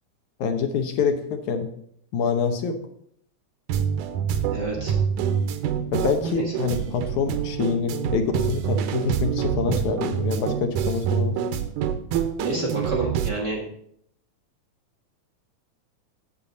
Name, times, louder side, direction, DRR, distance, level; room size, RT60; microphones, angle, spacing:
voice 1, 0.4-1.7 2.1-2.8 5.9-11.4, left 5 dB, 75° left, 6 dB, 2.2 m, -26 dB
sound 1, 3.7-13.3, right 8 dB, 85° right, 2.2 m, -26 dB
voice 2, 4.5-5.0 6.3-6.4 12.4-13.6, right 2 dB, 40° right, -3 dB, 1.8 m, -28 dB
8.5 x 7.9 x 4.0 m, 0.68 s
omnidirectional pair, 3.6 m